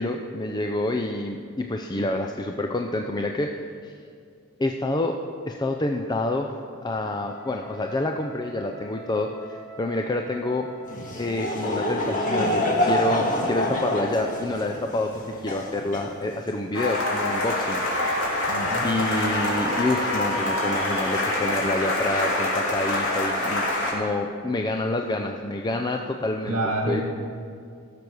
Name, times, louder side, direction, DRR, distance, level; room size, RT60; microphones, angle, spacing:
voice 1, 0.0-3.9 4.6-5.2 5.5-10.7 11.2-18.2 18.8-26.6 26.9-27.0, left 2 dB, 20° left, 3 dB, 0.5 m, -28 dB
Wind instrument woodwind instrument, 7.2-14.9, right 2 dB, ahead, 3.9 m, -45 dB
Laughter / Crowd, 10.9-16.6, left 1 dB, 40° left, 1.6 m, -27 dB
sound 1, 16.7-23.9, left 1 dB, 65° left, 3.1 m, -25 dB
voice 2, 18.5-18.9 26.5-27.0, right 1 dB, 75° right, 0 dB, 1.7 m, -27 dB
16.5 x 6.8 x 6.2 m, 2.3 s
head